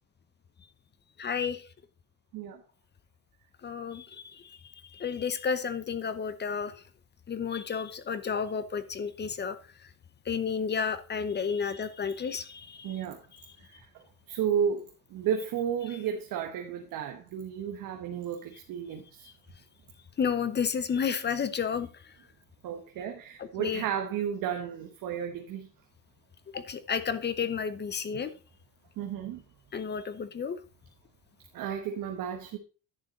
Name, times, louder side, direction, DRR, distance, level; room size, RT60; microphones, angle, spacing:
voice 1, 1.2-1.6 3.6-4.6 4.8-6.7 7.3-9.6 10.3-13.0 20.2-21.9 23.4-23.8 26.5-28.3 29.7-30.6, left 6 dB, 30° left, 0.8 m, -31 dB
voice 2, 12.8-13.2 13.7-13.8 14.3-19.3 22.6-25.7 29.0-29.4 31.5-32.6, right 8 dB, 85° right, 1.2 m, -33 dB
10.5 x 6.7 x 4.1 m
cardioid pair, 140°, 33 cm